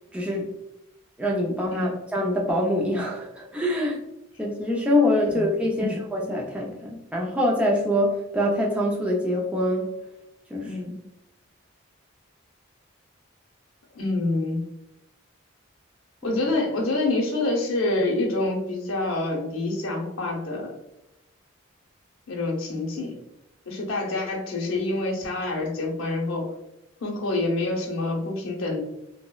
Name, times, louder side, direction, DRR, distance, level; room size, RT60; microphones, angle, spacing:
voice 1, 0.1-0.5 1.2-4.0 4.4-9.9 10.5-10.7 16.2-16.4, left 1 dB, 5° right, -2 dB, 0.3 m, -25 dB
voice 2, 10.6-11.0 13.9-14.7 16.2-20.7 22.3-23.1 23.7-26.5 27.0-28.8, left 2 dB, 80° left, -1 dB, 0.7 m, -27 dB
2.9 x 2.0 x 2.2 m, 0.89 s
head